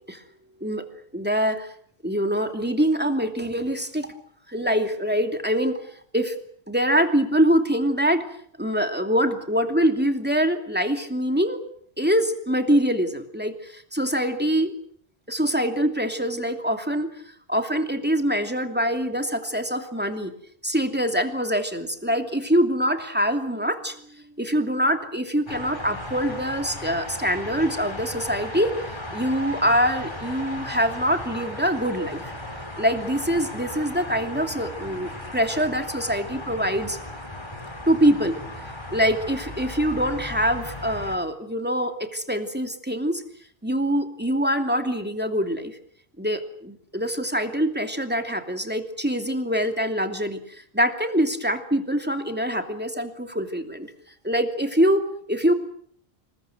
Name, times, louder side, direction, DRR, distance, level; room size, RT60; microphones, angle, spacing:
voice 1, 1.1-1.7 2.0-4.1 4.5-5.8 6.1-6.4 6.7-8.3 8.6-11.6 12.0-14.7 15.3-17.1 17.5-20.3 20.6-28.7 29.1-32.2 32.8-37.0 37.9-38.4 38.9-43.2 43.6-45.8 46.2-53.9 54.2-55.0 55.3-55.5, equal, 10° right, 6 dB, 2.7 m, -24 dB
sound 1, 25.5-41.2, left 1 dB, 25° left, 3.6 m, -36 dB
27.5 x 21.0 x 7.9 m, 0.62 s
omnidirectional pair, 1.1 m